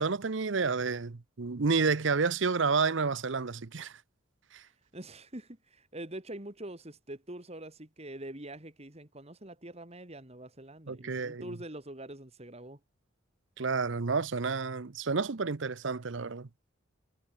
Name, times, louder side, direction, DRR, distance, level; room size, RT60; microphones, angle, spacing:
voice 1, 0.0-4.0 4.5-4.6 10.9-11.6 13.6-16.5, right 4 dB, 65° right, 0.8 m, -30 dB
voice 2, 4.9-12.8, right 1 dB, 30° right, 2.9 m, -44 dB
head